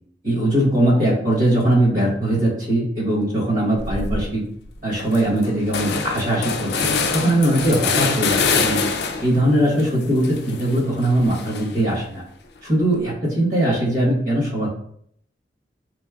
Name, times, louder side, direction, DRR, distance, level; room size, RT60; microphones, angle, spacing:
voice 1, 0.2-4.4 4.8-8.8 9.2-12.2 12.6-14.7, right 1 dB, 50° right, -4 dB, 1.3 m, -20 dB
sound 1, 3.8-4.2 4.7-4.8 5.0-9.4 9.8-11.9, left 4 dB, 65° left, 0.4 m, -25 dB
3.8 x 3.1 x 2.4 m, 0.66 s
head